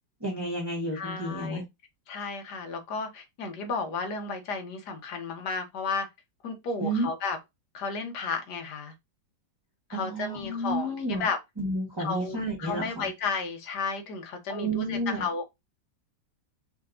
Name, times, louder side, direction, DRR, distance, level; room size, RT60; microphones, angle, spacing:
voice 1, 0.2-1.6 6.8-7.1 9.9-11.2 11.6-13.1 14.5-15.2, right 1 dB, 15° right, 1.2 m, -31 dB
voice 2, 0.9-1.6 2.1-6.1 6.4-7.4 7.7-8.9 9.9-11.4 12.0-15.5, left 4 dB, 65° left, 1.5 m, -33 dB
5.5 x 2.8 x 2.5 m
omnidirectional pair, 2.0 m